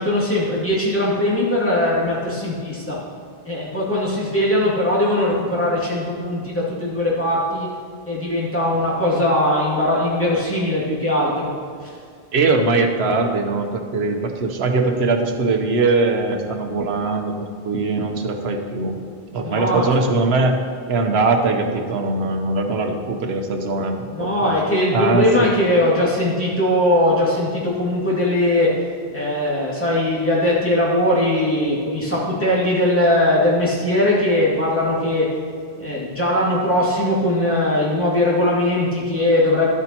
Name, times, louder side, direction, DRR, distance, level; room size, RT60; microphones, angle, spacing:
voice 1, 0.0-3.0 3.4-7.7 8.0-11.5 19.4-19.8 24.1-28.7 29.1-35.3 35.8-39.7, left 1 dB, 10° left, -7 dB, 2.2 m, -20 dB
voice 2, 12.3-19.0 19.3-20.6 20.9-24.5 24.9-25.5, right 3 dB, 85° right, 5 dB, 1.1 m, -21 dB
12.0 x 8.3 x 2.9 m, 2.1 s
omnidirectional pair, 1.0 m